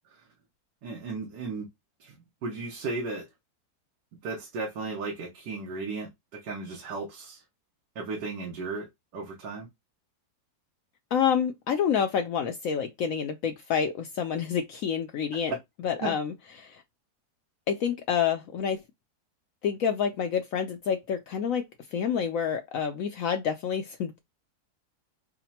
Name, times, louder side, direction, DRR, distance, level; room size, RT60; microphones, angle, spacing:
voice 1, 0.8-1.7 2.0-2.1 2.4-3.2 4.2-7.4 8.0-8.9 9.1-9.7 15.5-15.6 16.0-16.1, right 3 dB, 90° right, 1.5 m, -35 dB
voice 2, 11.1-15.5 15.8-16.8 17.7-18.8 19.6-21.7 21.9-24.2, left 7 dB, 70° left, 0.9 m, -28 dB
4.9 x 2.2 x 2.8 m
omnidirectional pair, 1.7 m